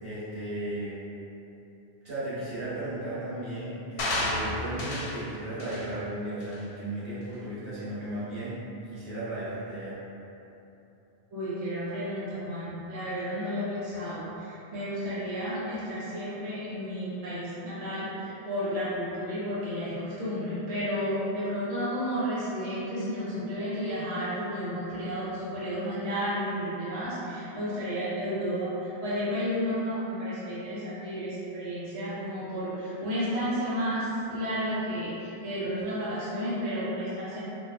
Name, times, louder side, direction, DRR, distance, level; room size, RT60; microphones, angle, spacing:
voice 1, 0.0-1.0 2.0-8.6 8.9-9.9, right 1 dB, 70° right, -11 dB, 1.2 m, -35 dB
sound 1, 4.0-5.2 5.6-5.9 6.4-6.5, left 1 dB, 90° left, 0.8 m, -31 dB
voice 2, 11.3-37.4, equal, 40° right, -11 dB, 0.8 m, -32 dB
3.6 x 2.5 x 2.2 m, 3.0 s
omnidirectional pair, 1.0 m